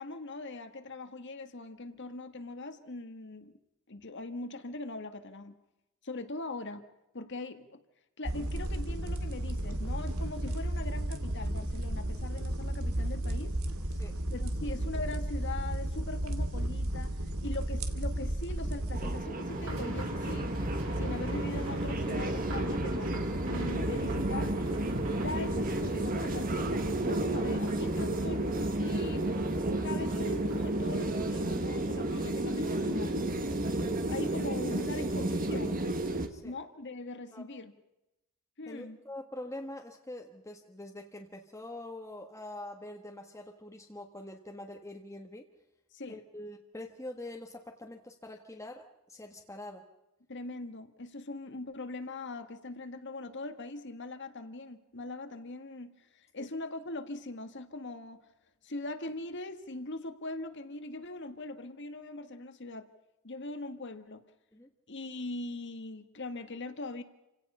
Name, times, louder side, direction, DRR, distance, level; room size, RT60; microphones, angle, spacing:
voice 1, 0.0-3.5 3.9-5.6 6.0-6.8 7.1-7.8 8.2-13.5 14.3-17.1 17.4-20.5 21.0-23.1 23.5-24.5 25.2-29.3 29.8-33.1 34.1-35.8 36.4-37.7 38.6-39.0 45.9-46.2 50.3-58.2 58.6-62.9 63.2-64.2 64.9-67.0, left 2 dB, 55° left, 9 dB, 1.7 m, -41 dB
sound 1, 8.2-19.2, right 1 dB, 85° right, 2.2 m, -33 dB
sound 2, 18.9-36.3, right 1 dB, 40° right, 1.8 m, -32 dB
sound 3, 19.5-34.9 35.2-35.3 35.7-35.8, equal, 70° right, 5.7 m, -39 dB
voice 2, 38.7-45.5 46.1-49.9 56.4-56.5 64.5-64.7, left 1 dB, 15° left, 1 dB, 1.4 m, -44 dB
28.5 x 17.0 x 5.6 m, 0.92 s
head